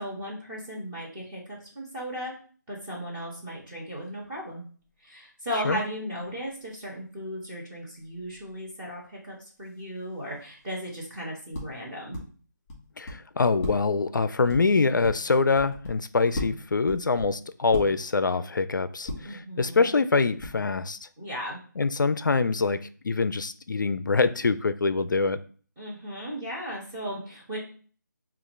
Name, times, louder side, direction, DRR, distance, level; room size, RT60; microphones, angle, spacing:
voice 1, 0.0-2.3 2.7-4.6 5.0-12.2 19.2-20.0 21.2-21.6 25.8-27.6, equal, 10° right, 1.4 m, -36 dB
sound 1, 4.0-4.1 8.2-8.4 10.7-11.0 11.5-12.2 12.7-13.2 13.6-16.0 16.3-18.2 19.0-19.5 20.4-20.8, left 2 dB, 20° left, 1.6 m, -38 dB
voice 2, 13.0-21.1 21.8-25.4, left 4 dB, 75° left, 0.4 m, -25 dB
5.6 x 2.4 x 3.2 m
figure-of-eight pair, 160°, 10 cm